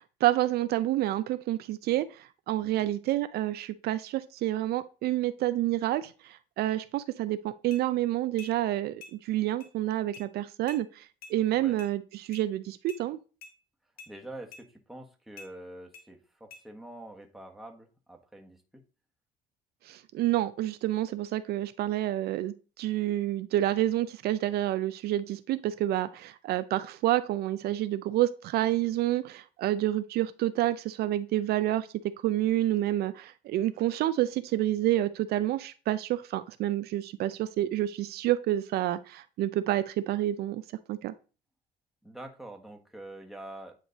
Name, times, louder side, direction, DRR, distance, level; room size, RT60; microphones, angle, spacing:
voice 1, 0.0-13.2 19.9-31.9 32.2-40.6 40.9-41.1, right 14 dB, 70° right, 13 dB, 0.4 m, -29 dB
sound 1, 7.7-7.8 8.4-8.6 9.0-9.2 9.6-9.7 10.1-10.3 10.7-10.8 11.2-11.4 11.8-11.9 12.3-12.5 12.9-13.0 13.4-13.5 14.0-14.1 14.5-14.7 15.4-15.5 15.9-16.1 16.5-16.6, left 4 dB, 70° left, 1.6 m, -48 dB
voice 2, 14.1-18.8 42.0-43.7, right 1 dB, ahead, 2 dB, 1.2 m, -46 dB
9.0 x 3.2 x 3.9 m, 0.34 s
cardioid pair, 110°, 17 cm